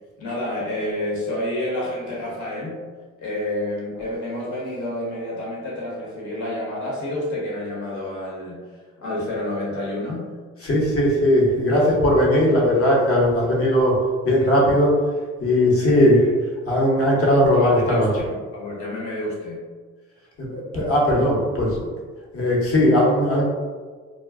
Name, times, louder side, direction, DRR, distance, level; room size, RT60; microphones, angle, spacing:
voice 1, 0.2-2.8 3.2-8.6 9.0-10.3 17.5-19.6, left 1 dB, 70° left, -5 dB, 1.2 m, -29 dB
voice 2, 10.6-13.9 14.2-14.9 15.4-16.3 16.6-18.1 20.4-21.9 22.3-23.4, left 1 dB, 50° left, -3 dB, 1.0 m, -18 dB
2.3 x 2.2 x 3.5 m, 1.5 s
cardioid pair, 90°, 30 cm